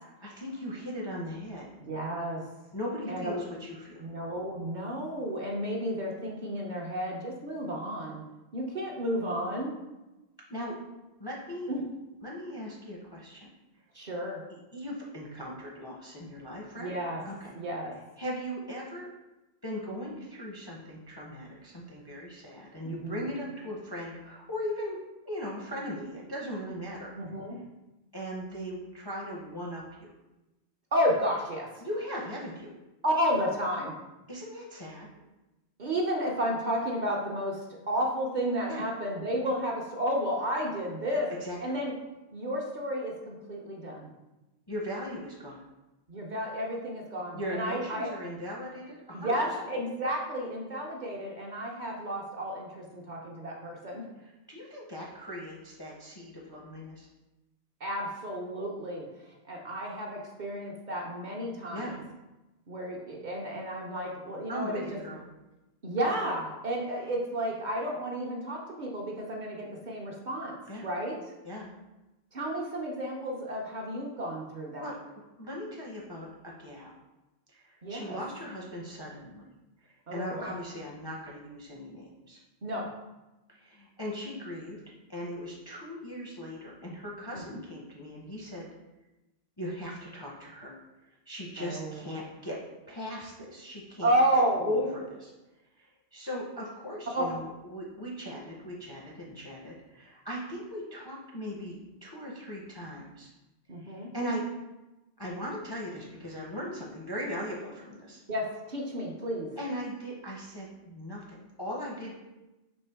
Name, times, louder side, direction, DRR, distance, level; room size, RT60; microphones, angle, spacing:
voice 1, 0.2-1.7 2.7-4.0 10.5-10.8 11.2-11.7 12.2-13.5 14.5-16.9 17.2-17.5 18.2-19.1 19.6-25.0 25.3-27.1 28.1-30.1 31.8-32.7 34.3-35.1 38.7-38.8 41.4-41.8 44.7-45.6 47.3-49.7 54.2-57.1 61.7-62.0 64.5-65.2 70.7-70.9 71.4-71.7 74.8-77.0 77.5-79.5 79.8-82.4 83.5-84.8 85.1-88.7 89.6-90.8 91.3-92.6 92.9-95.3 95.8-103.3 103.8-104.4 105.2-108.2 109.6-112.1, equal, 30° left, -3 dB, 0.4 m, -38 dB
voice 2, 1.8-2.4 3.1-3.4 4.0-8.2 8.5-9.7 11.7-11.8 13.9-14.4 16.8-17.2 17.5-17.9 22.8-23.2 27.2-27.6 30.9-31.8 33.0-33.9 35.8-37.6 37.9-41.3 41.6-41.9 42.3-44.1 46.1-48.1 49.1-54.1 57.8-59.1 59.5-62.0 62.7-64.8 65.8-71.1 72.3-74.9 77.8-78.2 80.1-80.5 82.6-82.9 87.3-87.4 91.6-92.0 94.0-94.7 97.1-97.4 103.7-104.1 108.3-109.5, equal, 50° right, -1 dB, 0.7 m, -32 dB
4.4 x 3.2 x 3.3 m, 1.0 s
omnidirectional pair, 1.2 m